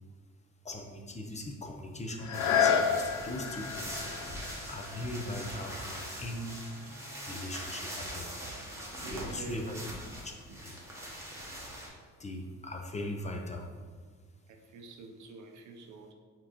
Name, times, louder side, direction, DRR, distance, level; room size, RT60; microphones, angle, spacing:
voice 1, 0.6-4.0 4.7-6.6 7.3-8.3 9.1-9.7 10.2-10.3 10.6-10.7 12.2-13.7, left 1 dB, 25° left, 2 dB, 0.6 m, -39 dB
sound 1, 2.2-7.8 8.4-8.5, left 7 dB, 75° left, 0.5 m, -32 dB
sound 2, 2.3-11.9, equal, 10° right, 1.0 m, -43 dB
sound 3, 4.2-9.8, right 3 dB, 30° right, 0.6 m, -51 dB
voice 2, 9.0-9.9 14.5-16.1, right 4 dB, 75° right, 4 dB, 0.6 m, -46 dB
4.5 x 3.7 x 2.9 m, 1.5 s
cardioid pair, 90°, 30 cm